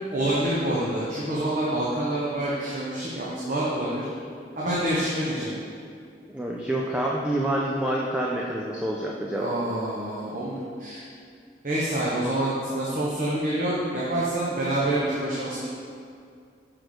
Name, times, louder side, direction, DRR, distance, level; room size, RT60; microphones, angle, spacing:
voice 1, 0.1-4.1 4.6-5.6 9.4-11.0 11.6-15.7, right 1 dB, 45° right, -7 dB, 1.1 m, -27 dB
voice 2, 6.3-9.5, right 1 dB, 5° right, -3 dB, 0.5 m, -27 dB
6.3 x 4.9 x 6.3 m, 2.3 s
head